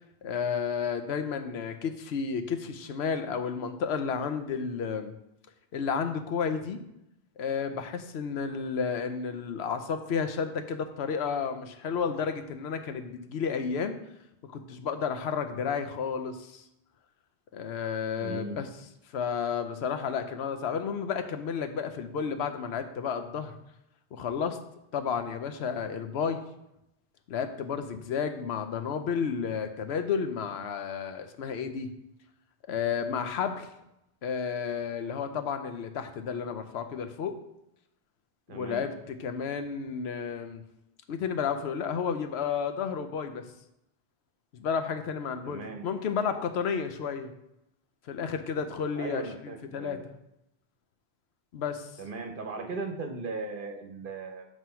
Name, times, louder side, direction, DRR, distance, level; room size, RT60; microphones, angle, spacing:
voice 1, 0.2-5.1 5.7-6.8 7.4-14.0 14.4-16.6 17.5-18.7 19.1-23.5 24.1-24.6 24.9-26.4 27.3-31.9 32.6-33.7 34.2-37.4 38.5-40.6 41.1-43.5 44.5-47.3 48.1-50.0 51.5-51.9, left 6 dB, 80° left, 8 dB, 0.9 m, -32 dB
voice 2, 18.2-18.6 38.5-38.9 45.4-45.9 48.9-50.0 52.0-54.5, right 3 dB, 55° right, 3 dB, 1.0 m, -38 dB
7.6 x 3.0 x 5.6 m, 0.83 s
omnidirectional pair, 1.1 m